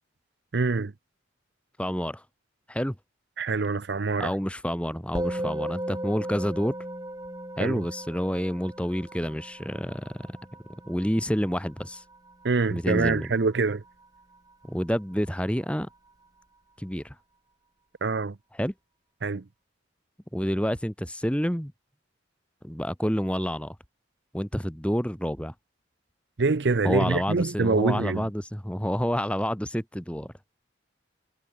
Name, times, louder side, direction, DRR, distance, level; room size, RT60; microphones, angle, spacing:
voice 1, 0.5-0.9 3.4-4.3 7.6-7.8 12.4-13.8 18.0-18.4 19.2-19.4 26.4-28.3, right 4 dB, 60° right, 0.6 m, -25 dB
voice 2, 1.8-2.2 2.7-2.9 4.2-6.7 7.6-10.3 10.9-12.0 12.7-13.3 14.7-15.9 16.8-17.1 18.5-18.7 20.3-21.7 22.6-23.8 24.3-25.5 26.8-30.3, equal, 5° left, 2.8 m, -28 dB
Musical instrument, 5.2-14.7, right 1 dB, 20° right, 3.6 m, -37 dB
head